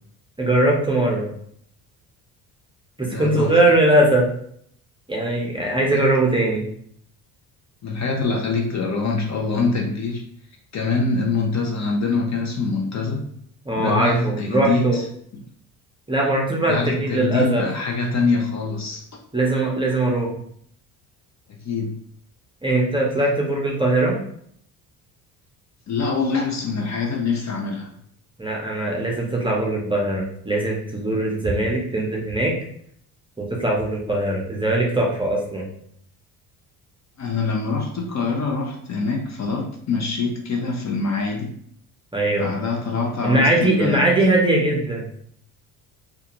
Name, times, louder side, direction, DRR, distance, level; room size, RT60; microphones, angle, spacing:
voice 1, 0.4-1.3 3.0-4.3 5.1-6.7 13.7-15.0 16.1-17.6 19.3-20.3 22.6-24.2 28.4-32.5 33.4-35.6 42.1-42.5 43.2-45.1, right 1 dB, 10° right, -1 dB, 0.7 m, -20 dB
voice 2, 3.0-3.5 5.9-6.0 7.8-10.2 10.7-13.2 13.7-15.0 16.7-19.0 21.6-21.9 25.9-27.9 37.2-41.5 42.4-44.0, left 3 dB, 40° left, 1 dB, 0.6 m, -24 dB
2.4 x 2.4 x 2.9 m, 0.65 s
supercardioid pair, 75°, 45 cm